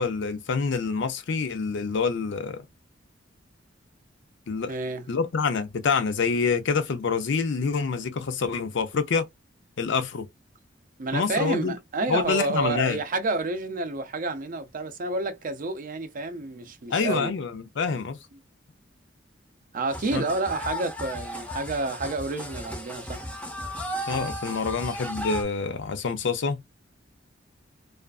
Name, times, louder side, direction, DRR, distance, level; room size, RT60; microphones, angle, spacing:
voice 1, 0.0-2.6 4.5-4.7 5.1-9.3 9.8-10.3 11.1-11.8 12.1-13.0 16.9-18.2 20.1-20.2 24.1-26.6, left 5 dB, 65° left, 0.5 m, -26 dB
voice 2, 4.7-5.1 11.0-17.3 19.7-23.2, right 3 dB, 45° right, 0.5 m, -29 dB
sound 1, 19.9-25.4, equal, 5° left, 0.5 m, -35 dB
2.4 x 2.3 x 2.3 m
head